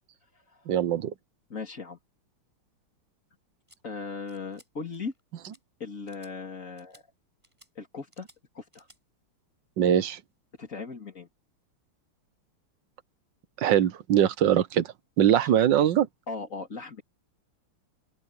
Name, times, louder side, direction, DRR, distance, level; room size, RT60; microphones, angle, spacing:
voice 1, 0.7-1.1 9.8-10.2 13.6-14.9 15.2-16.1, right 10 dB, 65° right, 1.4 m, -22 dB
voice 2, 1.5-2.0 3.8-5.1 5.8-7.0 7.8-8.3 8.5-8.9 10.6-11.3 15.3-15.5 16.3-17.0, left 4 dB, 35° left, 3.1 m, -38 dB
sound 1, 3.7-3.8 4.3-4.7 4.9-5.2 5.5-5.6 6.1-6.3 6.8-7.0 7.4-7.7 8.1-8.4 8.7-9.0, right 1 dB, 10° right, 7.8 m, -58 dB
open air
omnidirectional pair, 2.4 m